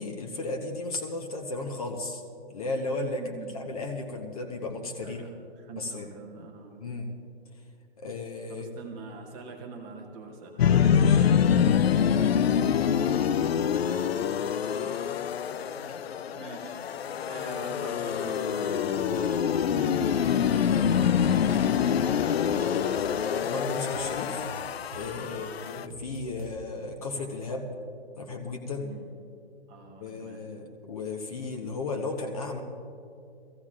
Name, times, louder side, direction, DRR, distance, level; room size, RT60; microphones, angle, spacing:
voice 1, 0.0-2.2 2.5-5.2 5.7-6.1 6.8-7.1 8.0-8.7 10.8-11.3 19.1-19.3 23.4-24.4 24.9-27.7 28.2-28.9 30.0-32.6, left 3 dB, 35° left, 3 dB, 1.0 m, -34 dB
voice 2, 3.1-3.6 5.0-6.9 8.5-10.8 12.2-13.7 15.7-16.0 16.3-22.8 25.3-25.5 28.8-29.1 29.7-30.5, right 3 dB, 10° right, 1 dB, 0.8 m, -44 dB
sound 1, 10.6-25.9, left 8 dB, 65° left, 0.5 m, -25 dB
sound 2, 19.0-21.4 21.7-23.4 23.7-26.9, right 5 dB, 35° right, 0.4 m, -47 dB
24.5 x 15.0 x 2.5 m, 2.5 s
hypercardioid pair, 165°, 33 cm